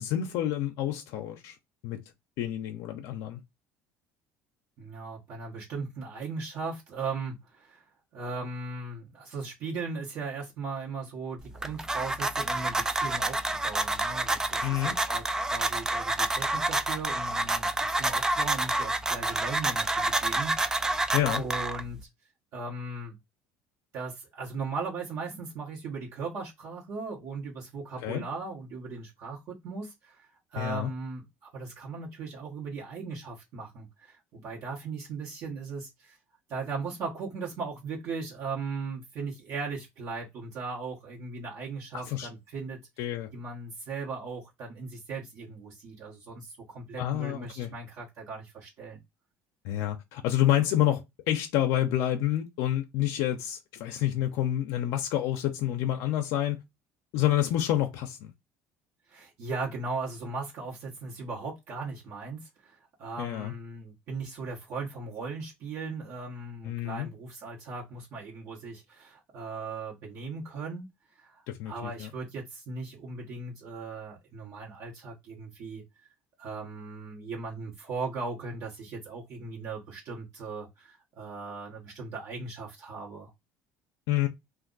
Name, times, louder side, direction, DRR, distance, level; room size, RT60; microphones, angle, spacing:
voice 1, 0.0-1.5 1.8-2.0 2.4-3.4 14.6-15.0 21.1-21.4 28.0-28.2 30.6-30.9 42.1-42.3 43.0-43.3 47.0-47.7 49.6-56.6 57.1-58.3 63.2-63.5 66.6-67.1 71.5-72.1 84.1-84.3, left 12 dB, 75° left, 0.6 m, -28 dB
voice 2, 4.8-7.8 8.1-22.1 22.5-23.2 23.9-36.2 36.5-42.8 43.3-49.0 59.1-70.9 71.2-75.8 76.4-83.3, right 4 dB, 55° right, 1.1 m, -38 dB
sound 1, 11.4-22.0, right 2 dB, 10° right, 0.3 m, -29 dB
2.5 x 2.5 x 3.8 m
cardioid pair, 135°, 6 cm